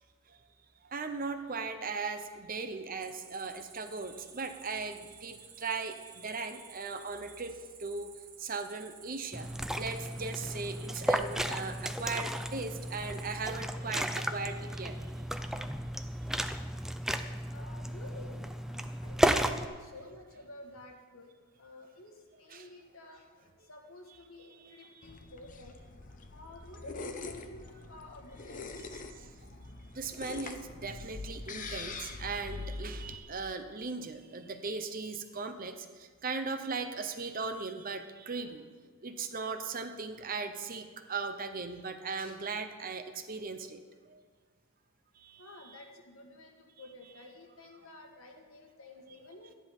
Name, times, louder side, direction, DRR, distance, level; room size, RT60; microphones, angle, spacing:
voice 1, 0.8-8.1 8.4-9.5 9.7-15.2 22.5-22.7 24.6-25.1 29.2-29.3 29.9-38.6 39.0-43.8 44.1-44.2 45.2-45.8, right 4 dB, 40° right, 7 dB, 0.8 m, -38 dB
Cricket, 3.0-13.4, right 8 dB, 80° right, 1.9 m, -53 dB
Liquid, 9.3-19.6, equal, ahead, 0.4 m, -34 dB
voice 2, 17.5-21.3 21.6-25.9 26.3-28.8 45.4-49.5, left 2 dB, 65° left, 1 dB, 1.9 m, -51 dB
sound 1, 25.0-33.2, left 3 dB, 35° left, 0.8 m, -44 dB
13.5 x 10.5 x 5.5 m, 1.5 s
head